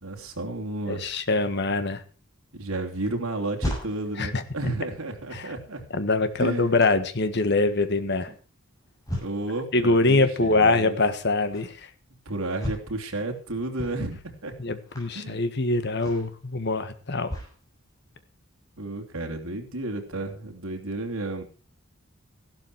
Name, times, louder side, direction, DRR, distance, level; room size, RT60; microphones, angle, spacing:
voice 1, 0.0-1.0 2.5-5.8 6.4-6.8 9.2-11.0 12.2-14.5 15.1-15.4 18.8-21.4, right 2 dB, 85° right, 3 dB, 3.2 m, -32 dB
voice 2, 0.9-2.0 4.2-4.4 5.3-5.5 5.9-8.3 9.7-11.9 14.6-17.4, left 3 dB, 50° left, 10 dB, 1.5 m, -24 dB
sound 1, 3.2-17.6 18.1-18.2, equal, 15° left, 7.1 m, -39 dB
15.0 x 12.0 x 4.7 m, 0.35 s
head